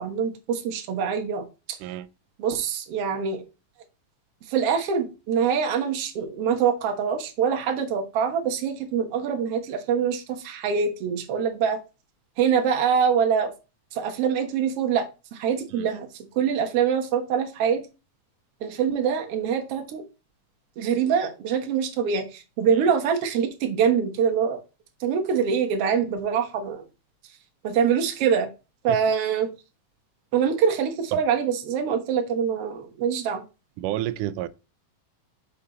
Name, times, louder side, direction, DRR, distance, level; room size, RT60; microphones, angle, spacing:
voice 1, 0.0-1.8 2.4-3.4 4.5-11.8 12.4-13.5 13.9-16.1 16.3-17.8 18.6-20.0 20.8-24.6 25.0-26.8 27.6-28.5 28.8-29.5 30.3-33.4, right 7 dB, 55° right, 2.0 m, -24 dB
voice 2, 33.8-34.5, right 14 dB, 80° right, 2.0 m, -30 dB
6.7 x 5.3 x 4.0 m
omnidirectional pair, 3.8 m